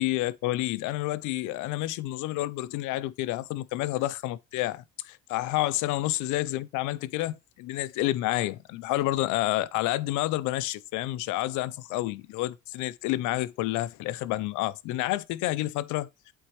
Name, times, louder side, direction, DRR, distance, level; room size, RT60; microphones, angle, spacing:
voice 1, 0.0-16.1, left 16 dB, 70° left, 0.5 m, -29 dB
7.9 x 4.2 x 3.0 m
cardioid pair, 120°, 31 cm